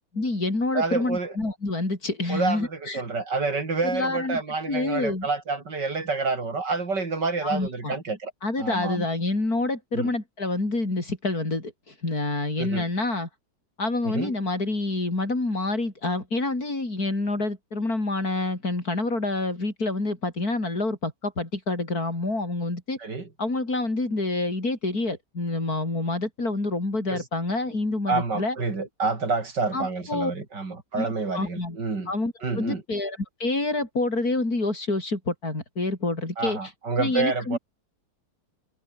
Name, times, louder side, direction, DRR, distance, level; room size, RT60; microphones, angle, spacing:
voice 1, 0.0-3.0 3.8-4.4 4.7-5.3 7.4-7.9 8.4-13.3 13.8-23.0 23.4-28.6 29.7-30.3 31.0-31.8 32.1-36.6 37.0-37.6, left 2 dB, 60° left, 6.0 m, -27 dB
voice 2, 0.7-1.3 2.3-8.3 8.6-9.1 9.9-10.1 12.6-12.9 14.0-14.3 23.0-23.3 27.1-27.2 28.1-32.1 32.4-32.8 36.4-37.6, right 4 dB, 85° right, 4.4 m, -28 dB
omnidirectional pair, 1.8 m